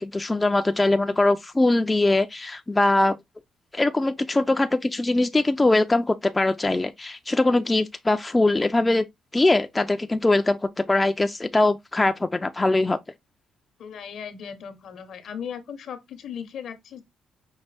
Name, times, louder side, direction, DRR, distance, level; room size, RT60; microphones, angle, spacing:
voice 1, 0.0-3.2 3.7-9.0 9.3-13.0, left 2 dB, 20° left, 0.3 m, -22 dB
voice 2, 13.8-17.0, left 7 dB, 70° left, 0.8 m, -37 dB
5.3 x 2.1 x 3.2 m
cardioid pair, 90°, 0 cm